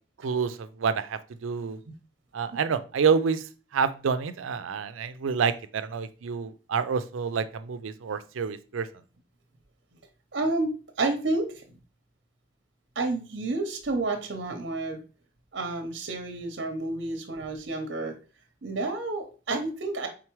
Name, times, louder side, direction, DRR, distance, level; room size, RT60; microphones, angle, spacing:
voice 1, 0.2-1.8 2.3-8.9, right 6 dB, 90° right, 12 dB, 0.4 m, -28 dB
voice 2, 10.3-11.8 13.0-15.0 15.5-18.2 18.6-20.1, right 2 dB, 60° right, 6 dB, 0.7 m, -30 dB
4.7 x 3.8 x 3.0 m, 0.35 s
head